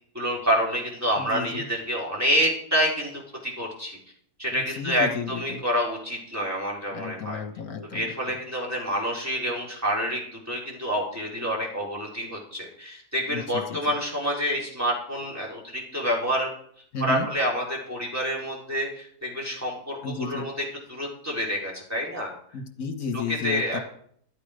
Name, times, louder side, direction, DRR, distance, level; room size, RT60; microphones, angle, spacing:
voice 1, 0.1-3.1 3.4-4.0 4.4-7.4 7.9-16.5 17.0-22.3 23.1-23.8, equal, 10° right, -4 dB, 4.2 m, -28 dB
voice 2, 1.2-1.6 4.5-5.6 6.9-8.1 13.3-13.8 16.9-17.3 20.0-20.5 22.5-23.8, left 4 dB, 60° left, 6 dB, 1.8 m, -33 dB
13.0 x 8.6 x 5.1 m, 0.62 s
omnidirectional pair, 1.8 m